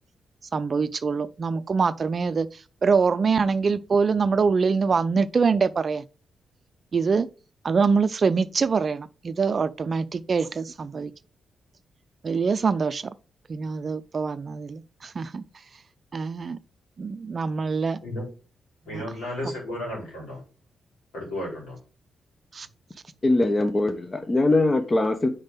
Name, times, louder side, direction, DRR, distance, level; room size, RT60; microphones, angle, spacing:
voice 1, 0.5-6.0 6.9-7.3 7.6-11.1 12.2-13.1 13.5-15.4 16.1-16.6 17.0-18.0 18.9-19.0 19.4-19.5 22.5-22.7, right 5 dB, 50° right, 0.5 m, -24 dB
voice 2, 18.9-20.4 21.1-21.8, left 1 dB, 85° left, 3.8 m, -33 dB
voice 3, 23.2-25.3, left 2 dB, 35° left, 1.1 m, -21 dB
5.3 x 4.9 x 5.4 m
hypercardioid pair, 45°, 0 cm